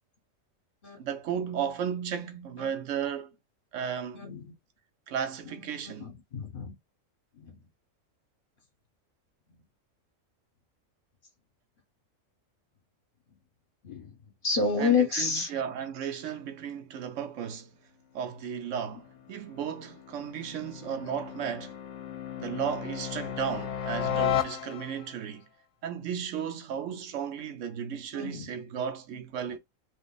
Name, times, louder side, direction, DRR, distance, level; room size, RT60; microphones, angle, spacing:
voice 1, 1.0-3.3 3.7-4.2 5.1-6.1 14.8-17.7 18.1-21.8 22.4-25.5 25.8-29.6, right 8 dB, 70° right, 0.9 m, -34 dB
voice 2, 4.1-4.5 5.9-6.7 7.4-7.6 13.8-14.2 14.4-15.5 21.0-21.1 28.1-28.5, left 5 dB, 45° left, 1.0 m, -29 dB
sound 1, 18.7-25.2, left 9 dB, 70° left, 0.9 m, -34 dB
2.7 x 2.6 x 3.8 m
omnidirectional pair, 1.4 m